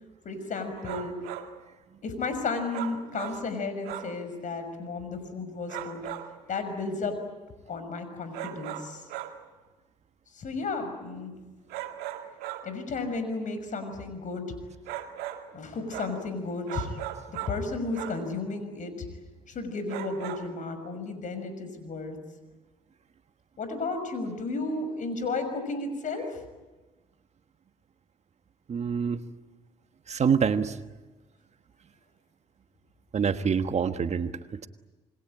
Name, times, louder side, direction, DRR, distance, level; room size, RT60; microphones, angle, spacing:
voice 1, 0.2-1.1 2.0-6.0 6.5-7.2 7.7-9.0 10.3-11.3 12.6-14.4 15.5-16.9 17.3-19.1 19.5-22.2 23.6-26.4, left 3 dB, 55° left, 9 dB, 6.1 m, -33 dB
sound 1, 0.8-1.6 2.7-3.5 3.8-4.2 5.7-6.4 8.3-9.4 11.7-12.8 14.9-15.5 15.9-16.3 16.7-17.7 17.9-18.3 19.9-20.6, right 12 dB, 75° right, 1.9 m, -38 dB
voice 2, 28.7-29.2 30.1-30.8 33.1-34.7, right 6 dB, 45° right, 10 dB, 1.4 m, -26 dB
27.5 x 21.5 x 9.0 m, 1.2 s
hypercardioid pair, 55°, 16 cm